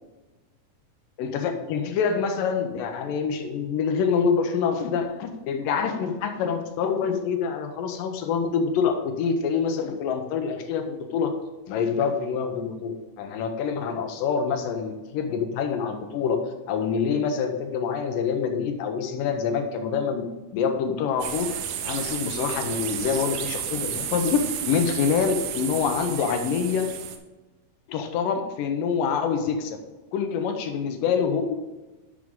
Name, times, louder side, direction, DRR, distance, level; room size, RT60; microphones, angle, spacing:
voice 1, 1.2-11.3 11.7-21.5 21.8-24.4 24.6-26.9 27.9-29.8 30.1-31.6, left 6 dB, 85° left, 6 dB, 2.5 m, -26 dB
sound 1, 21.2-27.2, right 9 dB, 75° right, 2.2 m, -32 dB
11.0 x 6.2 x 3.7 m, 1.2 s
omnidirectional pair, 3.8 m